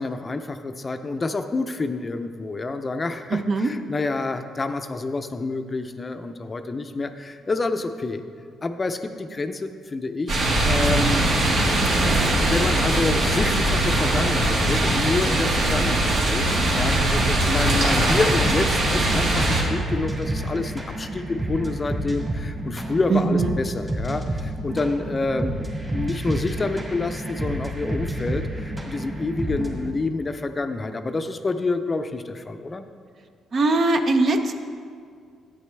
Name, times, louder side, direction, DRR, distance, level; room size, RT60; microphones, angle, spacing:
voice 1, 0.0-8.2 8.6-11.4 11.8-32.9, left 3 dB, 30° left, 8 dB, 0.5 m, -28 dB
voice 2, 3.3-3.7 17.1-17.7 18.4-18.6 23.1-23.5 33.5-34.5, right 3 dB, 50° right, 7 dB, 0.7 m, -22 dB
sound 1, 10.3-19.6, right 1 dB, 75° right, 2.0 m, -21 dB
sound 2, 17.9-29.9, right 1 dB, 20° right, 1.9 m, -30 dB
11.0 x 8.6 x 3.3 m, 2.2 s
cardioid pair, 90°, 0 cm